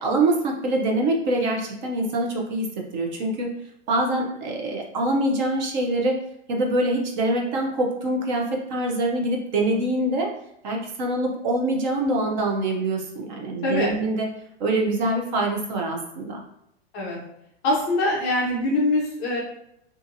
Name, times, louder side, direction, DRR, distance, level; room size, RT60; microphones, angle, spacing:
voice 1, 0.0-2.7 2.9-3.5 3.9-6.2 6.5-10.3 10.6-14.3 14.6-16.4, right 1 dB, 45° right, 1 dB, 0.5 m, -24 dB
voice 2, 17.6-19.4, left 2 dB, 25° left, -3 dB, 0.4 m, -23 dB
2.6 x 2.5 x 2.5 m, 0.77 s
supercardioid pair, 155°, 33 cm